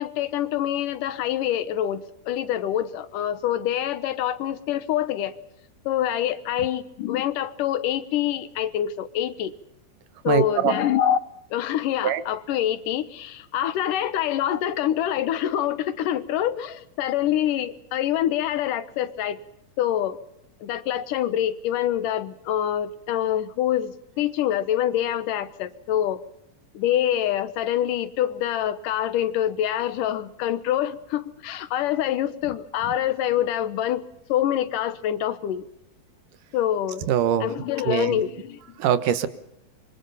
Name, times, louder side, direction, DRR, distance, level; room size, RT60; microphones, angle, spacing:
voice 1, 0.0-5.4 5.9-9.5 10.2-11.2 11.5-19.4 19.8-20.2 20.6-26.2 26.7-35.6 36.5-37.1 37.4-38.6, left 11 dB, 90° left, 13 dB, 2.8 m, -25 dB
voice 2, 10.3-10.8 12.0-12.2 37.1-37.5 37.9-38.2 38.8-39.3, right 9 dB, 90° right, 12 dB, 2.9 m, -22 dB
25.5 x 24.0 x 5.6 m, 0.82 s
omnidirectional pair, 3.6 m